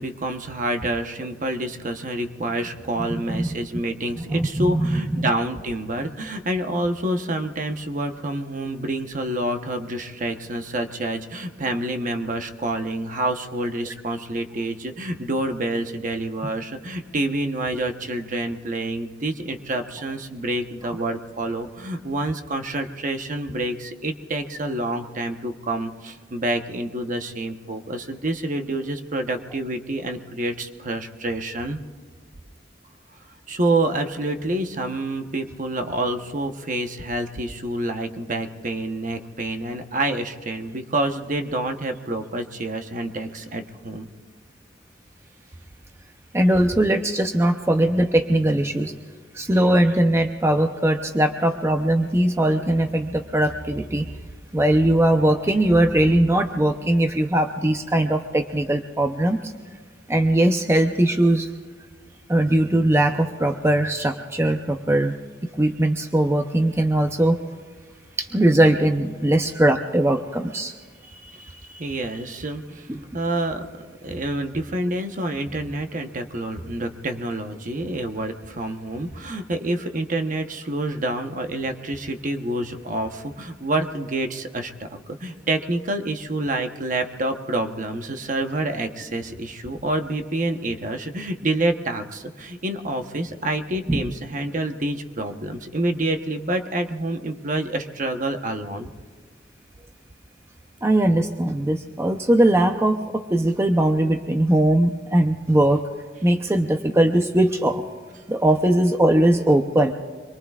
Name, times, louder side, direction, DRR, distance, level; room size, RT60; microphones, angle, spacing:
voice 1, 0.0-31.8 33.5-44.1 71.0-98.9, right 1 dB, 45° right, 6 dB, 1.0 m, -28 dB
voice 2, 4.3-5.3 20.9-21.0 46.3-48.9 49.3-54.1 54.5-59.5 60.1-61.5 62.3-65.1 65.6-67.4 68.2-70.7 72.9-73.0 93.9-94.0 100.8-105.8 106.2-107.8 108.3-109.9, right 1 dB, 15° right, 5 dB, 0.6 m, -20 dB
25.5 x 23.0 x 2.4 m, 1.5 s
head